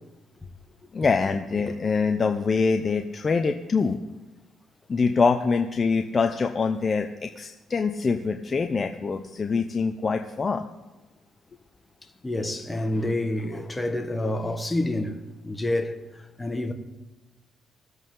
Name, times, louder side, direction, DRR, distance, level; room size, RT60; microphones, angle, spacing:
voice 1, 0.9-4.0 4.9-10.6, left 4 dB, 35° left, 0.7 m, -24 dB
voice 2, 12.2-16.0 16.4-16.7, left 1 dB, 15° left, 1.3 m, -28 dB
19.5 x 8.2 x 3.8 m
cardioid pair, 90°, 0 cm